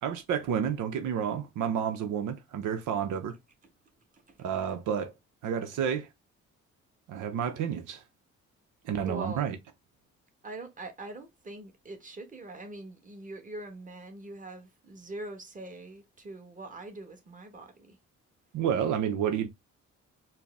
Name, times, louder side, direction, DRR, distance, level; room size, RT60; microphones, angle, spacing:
voice 1, 0.0-3.4 4.4-5.1 5.4-6.1 7.1-8.0 8.9-9.6 18.5-19.5, right 8 dB, 80° right, 0.7 m, -30 dB
voice 2, 9.0-9.5 10.4-17.9, right 2 dB, 25° right, 1.3 m, -43 dB
4.5 x 2.1 x 3.5 m
cardioid pair, 90°, 30 cm